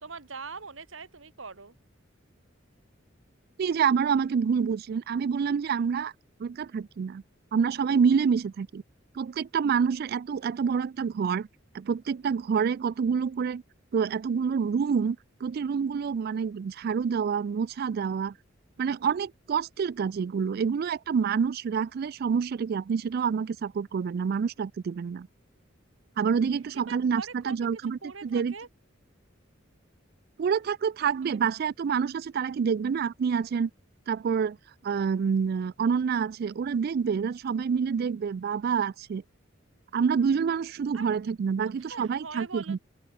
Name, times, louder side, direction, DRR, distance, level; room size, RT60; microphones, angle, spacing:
voice 1, 0.0-1.7 26.9-27.6 27.8-28.7 40.9-41.1 41.6-42.8, right 4 dB, 85° right, 1.9 m, -42 dB
voice 2, 3.6-6.1 6.4-7.2 7.5-8.8 9.2-11.5 11.7-13.6 13.9-18.3 18.8-25.3 26.2-28.5 30.4-33.7 34.1-34.6 34.8-39.2 39.9-42.8, right 6 dB, 50° right, 0.3 m, -27 dB
open air
head